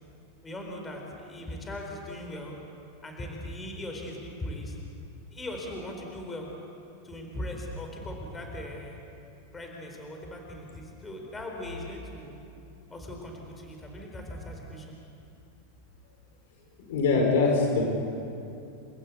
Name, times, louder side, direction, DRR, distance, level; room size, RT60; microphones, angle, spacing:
voice 1, 0.4-2.6 3.0-4.8 5.3-6.5 7.0-9.0 9.5-12.3 12.9-15.0, left 1 dB, 10° left, 1 dB, 4.2 m, -39 dB
voice 2, 16.9-17.8, left 4 dB, 75° left, 1 dB, 5.1 m, -23 dB
29.5 x 15.5 x 8.4 m, 2.6 s
supercardioid pair, 150°, 0 cm